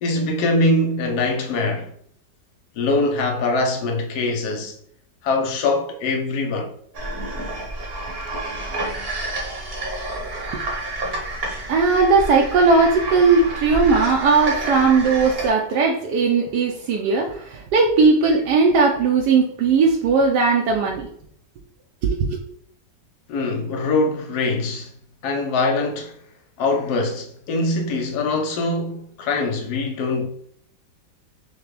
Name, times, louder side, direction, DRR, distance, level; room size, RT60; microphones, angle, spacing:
voice 1, 0.0-1.9 2.8-4.7 5.2-6.8 23.3-24.9 25.2-26.1 26.6-30.3, left 2 dB, 70° left, 1.2 m, -23 dB
sound 1, 6.9-15.5, right 1 dB, 45° right, 1.0 m, -29 dB
voice 2, 11.7-21.1 22.0-22.4, right 4 dB, 75° right, 1.1 m, -18 dB
5.9 x 2.2 x 3.2 m
omnidirectional pair, 1.9 m